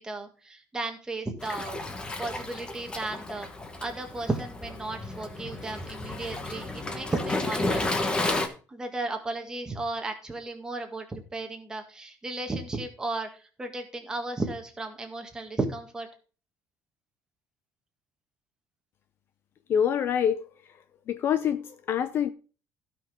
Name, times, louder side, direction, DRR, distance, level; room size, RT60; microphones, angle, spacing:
voice 1, 0.0-1.8 2.2-3.5 3.8-7.9 8.7-13.3 13.6-16.1, right 2 dB, 10° right, 1.8 m, -34 dB
Waves surf, 1.4-8.5, left 2 dB, 15° left, 1.2 m, -32 dB
voice 2, 19.7-20.4 21.1-22.3, left 8 dB, 35° left, 0.5 m, -25 dB
16.0 x 5.9 x 3.6 m
cardioid pair, 175°, 6 cm